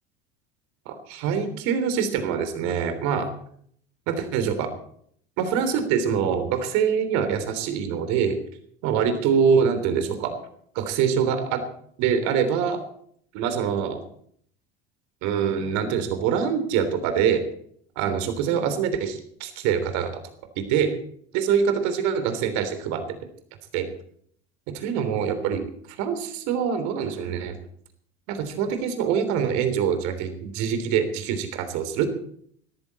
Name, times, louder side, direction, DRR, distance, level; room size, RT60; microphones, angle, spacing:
voice 1, 0.8-3.3 4.1-4.7 5.4-8.4 8.8-10.3 10.7-11.6 12.0-12.8 13.3-14.0 15.2-17.4 17.9-20.1 20.6-20.9 21.3-23.0 23.7-23.9 24.7-25.6 26.0-27.6 28.3-32.2, right 7 dB, 60° right, 9 dB, 3.4 m, -24 dB
19.0 x 14.0 x 4.3 m, 0.63 s
figure-of-eight pair, 70°, 32 cm